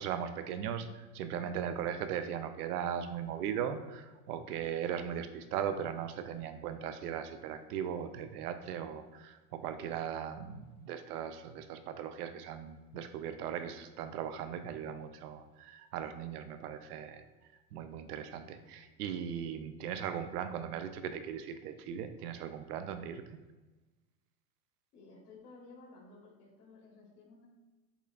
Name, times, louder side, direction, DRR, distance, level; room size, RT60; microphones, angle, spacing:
voice 1, 0.0-17.2 17.7-23.2, right 8 dB, 85° right, 9 dB, 0.5 m, -38 dB
voice 2, 24.9-27.5, left 3 dB, 85° left, -2 dB, 1.4 m, -55 dB
6.7 x 2.4 x 2.3 m, 1.2 s
hypercardioid pair, 105°, 45 cm